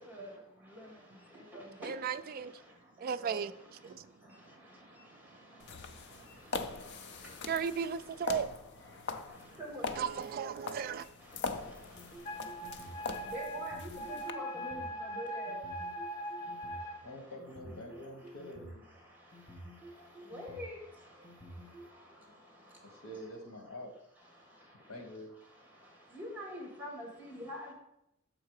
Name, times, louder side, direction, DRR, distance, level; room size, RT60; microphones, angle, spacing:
voice 1, 1.8-2.5 3.0-3.5 3.8-4.0 7.5-8.5 10.0-11.0, right 7 dB, 45° right, 0.3 m, -35 dB
sound 1, 5.6-14.3, left 4 dB, 55° left, 0.5 m, -42 dB
sound 2, 11.9-13.0 13.5-14.8 15.5-16.8 17.4-18.8 19.3-20.7 21.2-21.9, equal, 20° left, 0.8 m, -51 dB
Wind instrument woodwind instrument, 12.2-17.0, equal, 40° left, 1.5 m, -41 dB
voice 2, 13.3-14.8 15.2-15.6 20.3-20.8 26.1-27.7, equal, 10° right, 2.1 m, -43 dB
voice 3, 17.0-18.8 21.9-22.2 22.8-23.9 24.7-25.3, left 1 dB, 85° left, 1.5 m, -47 dB
6.4 x 4.6 x 4.8 m
head